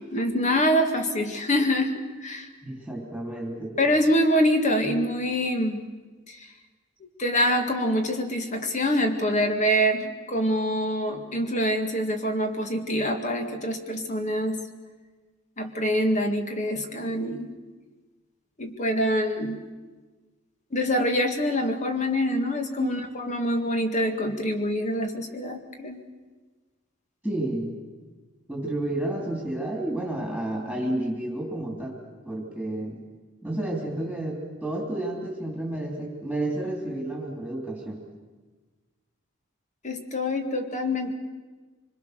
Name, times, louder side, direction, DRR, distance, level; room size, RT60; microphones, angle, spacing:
voice 1, 0.1-2.5 3.8-5.9 6.3-6.4 7.2-14.7 15.6-17.5 18.6-19.6 20.7-26.0 39.8-41.1, equal, 35° left, 5 dB, 1.8 m, -25 dB
voice 2, 2.6-3.8 22.8-22.9 27.2-27.7 28.5-32.0 32.2-33.0 33.4-38.0, right 1 dB, ahead, -1 dB, 3.2 m, -31 dB
26.0 x 21.0 x 6.7 m, 1.3 s
head